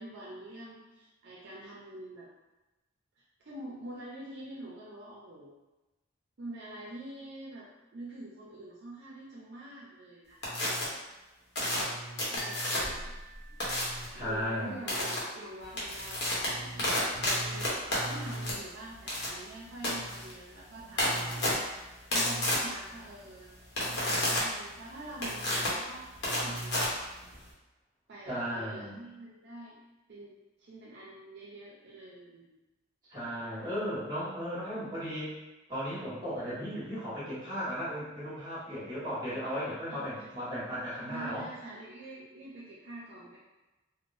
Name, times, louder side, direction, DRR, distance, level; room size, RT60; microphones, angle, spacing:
voice 1, 0.0-2.3 3.2-5.6 6.4-10.8 12.2-13.1 14.1-17.0 17.3-23.5 23.8-26.8 28.1-29.8 30.1-32.5 39.9-40.3 41.0-43.4, right 1 dB, 60° right, -6 dB, 0.5 m, -46 dB
sound 1, 10.4-10.8 11.5-13.0 13.6-14.1 14.9-15.2 15.6-27.5, left 1 dB, 60° left, 0.9 m, -32 dB
sound 2, 12.4-14.3, equal, 85° left, 0.4 m, -47 dB
voice 2, 14.1-14.8 28.3-29.0 33.1-35.3 35.7-41.5, equal, 20° right, -10 dB, 1.4 m, -36 dB
3.5 x 2.0 x 2.5 m, 1.1 s
head